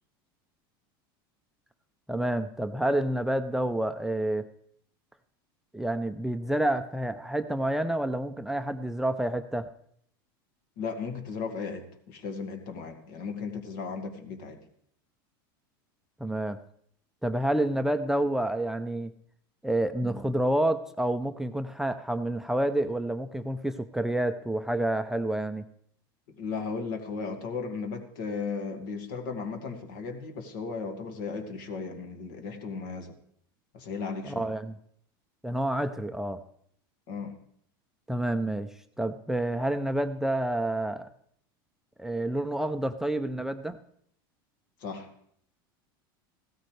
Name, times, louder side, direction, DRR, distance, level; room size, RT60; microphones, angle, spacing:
voice 1, 2.1-4.5 5.7-9.7 16.2-16.6 17.2-19.1 19.6-25.6 34.2-34.7 35.4-36.4 38.1-38.7 39.0-41.1 42.0-43.8, right 1 dB, 5° right, 10 dB, 0.5 m, -28 dB
voice 2, 10.8-14.6 26.4-33.1 33.7-34.5 37.1-37.4 44.8-45.1, left 5 dB, 70° left, 5 dB, 2.0 m, -36 dB
15.5 x 13.0 x 3.3 m, 0.65 s
supercardioid pair, 115°, 12 cm